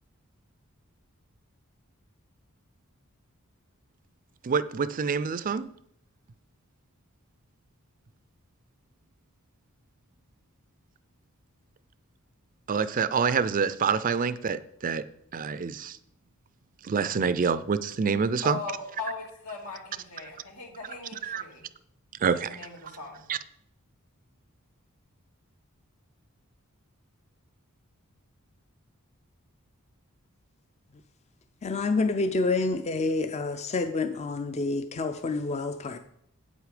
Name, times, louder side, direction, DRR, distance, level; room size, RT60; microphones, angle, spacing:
voice 1, 4.4-5.7 12.7-15.0 15.3-16.0 16.9-18.6 21.3-21.4 22.2-22.6 23.3-23.4, right 5 dB, 40° right, 0.4 m, -26 dB
voice 2, 18.4-21.6 22.3-23.2, left 3 dB, 85° left, 2.3 m, -39 dB
voice 3, 31.6-36.0, left 3 dB, 30° left, 0.5 m, -28 dB
8.2 x 8.1 x 5.0 m
head